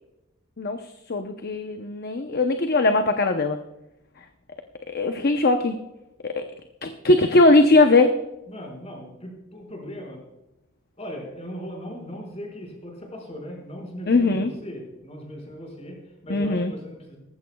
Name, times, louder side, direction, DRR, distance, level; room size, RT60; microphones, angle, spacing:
voice 1, 0.6-3.6 4.9-5.8 6.2-6.5 6.8-8.2 14.1-14.5 16.3-16.7, left 2 dB, 50° left, 6 dB, 0.8 m, -20 dB
voice 2, 8.5-10.2 11.0-17.2, equal, 30° left, 0 dB, 5.2 m, -38 dB
18.5 x 15.5 x 2.3 m, 0.95 s
head